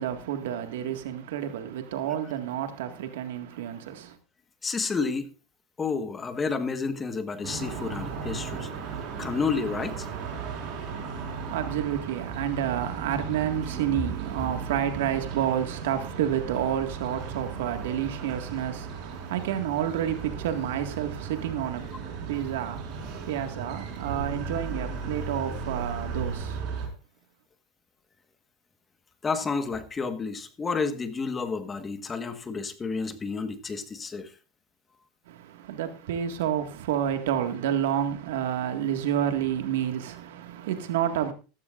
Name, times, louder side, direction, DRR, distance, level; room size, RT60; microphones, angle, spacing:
voice 1, 0.0-4.2 11.1-26.6 35.3-41.3, right 10 dB, 80° right, 1.8 m, -30 dB
voice 2, 4.6-5.3 5.8-8.7 9.2-10.1 29.2-34.3, left 4 dB, 20° left, 1.4 m, -30 dB
sound 1, 7.4-26.9, right 5 dB, 55° right, 4.6 m, -36 dB
14.5 x 14.5 x 2.5 m
supercardioid pair, 120°, 0 cm